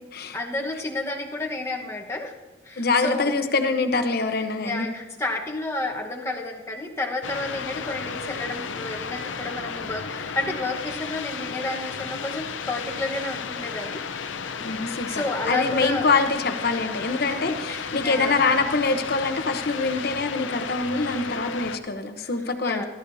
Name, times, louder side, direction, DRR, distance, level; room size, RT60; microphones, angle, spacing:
voice 1, 0.3-2.3 2.6-3.3 4.3-14.0 14.8-16.1 17.3-18.4 20.9-21.5 22.2-22.3 22.6-22.8, left 2 dB, 15° left, 0 dB, 1.2 m, -31 dB
voice 2, 2.8-4.9 14.6-22.8, left 3 dB, 55° left, 6 dB, 0.9 m, -25 dB
sound 1, 7.2-21.8, left 5 dB, 90° left, 0.6 m, -33 dB
18.5 x 12.5 x 2.7 m, 1.2 s
head